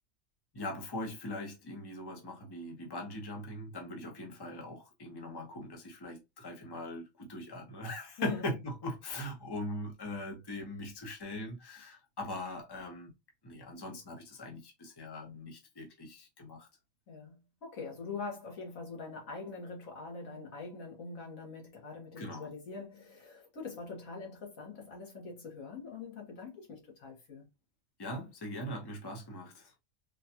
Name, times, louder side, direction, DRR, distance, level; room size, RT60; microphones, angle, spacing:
voice 1, 0.5-13.1 13.4-16.7 22.2-22.5 28.0-29.7, left 1 dB, 20° left, 0.8 m, -41 dB
voice 2, 17.1-27.4, left 4 dB, 80° left, 1.6 m, -44 dB
3.8 x 2.3 x 2.8 m
omnidirectional pair, 1.4 m